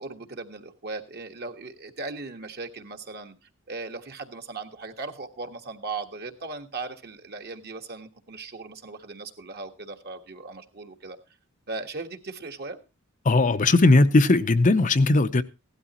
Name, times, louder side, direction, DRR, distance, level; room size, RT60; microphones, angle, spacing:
voice 1, 0.0-3.3 3.7-11.2 11.7-12.8, right 3 dB, 50° right, 1.6 m, -38 dB
voice 2, 13.2-15.4, left 2 dB, 35° left, 0.6 m, -18 dB
16.5 x 12.5 x 3.0 m
head